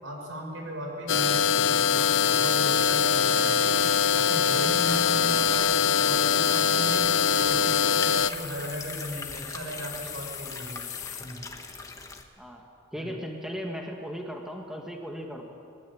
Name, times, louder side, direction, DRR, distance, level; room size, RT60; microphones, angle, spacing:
voice 1, 0.0-3.8 4.1-7.1 7.4-10.8 11.2-11.5 12.9-13.1, equal, 85° right, 1 dB, 6.0 m, -37 dB
sound 1, 1.1-8.3, left 7 dB, 70° left, 0.5 m, -23 dB
sound 2, 1.7-11.4, left 10 dB, 40° left, 1.2 m, -40 dB
sound 3, 4.7-12.2, left 3 dB, 15° left, 1.3 m, -42 dB
voice 2, 12.9-15.5, equal, ahead, 1 dB, 1.8 m, -37 dB
20.0 x 19.5 x 8.6 m, 2.5 s
head